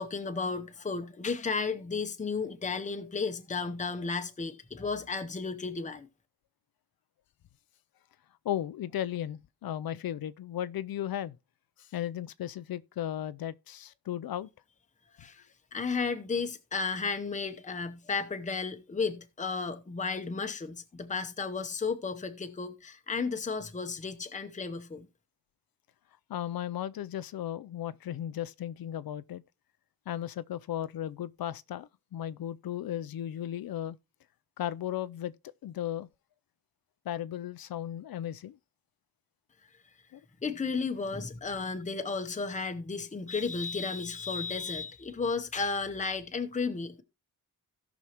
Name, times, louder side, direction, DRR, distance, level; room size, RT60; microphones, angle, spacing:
voice 1, 0.0-6.1 15.2-15.4 15.7-25.1 40.4-47.0, left 4 dB, 20° left, 0.8 m, -33 dB
voice 2, 8.4-11.4 11.8-14.5 26.3-29.4 30.1-34.0 34.6-35.3 35.6-36.1 37.1-38.6 40.1-40.2, left 11 dB, 65° left, 0.5 m, -35 dB
17.0 x 6.2 x 2.9 m
wide cardioid pair, 155°, 38 cm